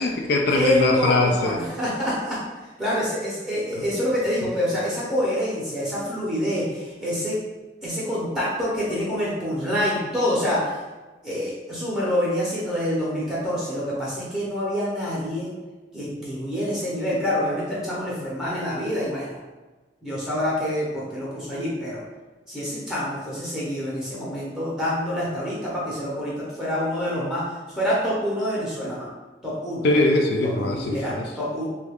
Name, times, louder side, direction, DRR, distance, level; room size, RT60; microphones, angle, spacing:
voice 1, 0.0-1.6 29.8-31.3, left 2 dB, 60° left, 3 dB, 0.3 m, -21 dB
voice 2, 0.5-2.4 2.8-7.4 7.8-10.8 11.2-15.5 15.9-19.4 20.0-22.0 22.5-27.5 27.7-29.1 29.4-29.9 30.6-31.6, equal, 5° right, -8 dB, 0.7 m, -26 dB
3.2 x 2.3 x 3.4 m, 1.2 s
head